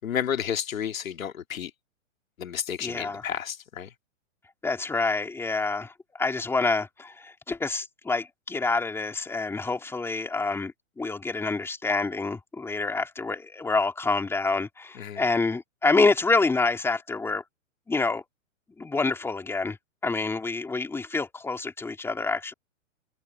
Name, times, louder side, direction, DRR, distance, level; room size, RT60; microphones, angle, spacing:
voice 1, 0.0-1.7 2.4-3.9 15.0-15.2, left 8 dB, 85° left, 2.5 m, -31 dB
voice 2, 2.8-3.2 4.6-17.4 17.9-18.2 18.8-19.8 20.0-22.5, left 3 dB, 5° left, 2.8 m, -27 dB
hypercardioid pair, 145°, 39 cm